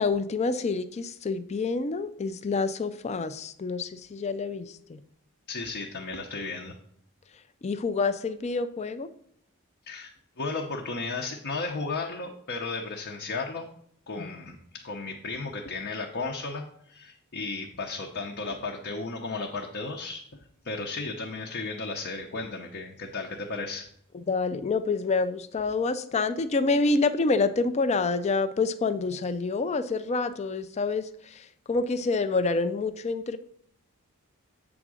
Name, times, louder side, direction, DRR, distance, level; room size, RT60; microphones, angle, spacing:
voice 1, 0.0-5.0 7.6-9.1 14.2-14.3 24.1-33.4, left 3 dB, 30° left, 11 dB, 0.4 m, -27 dB
voice 2, 5.5-6.7 9.9-13.7 14.1-20.2 20.6-23.9, left 3 dB, 50° left, 1 dB, 0.8 m, -34 dB
7.9 x 3.6 x 6.2 m, 0.69 s
head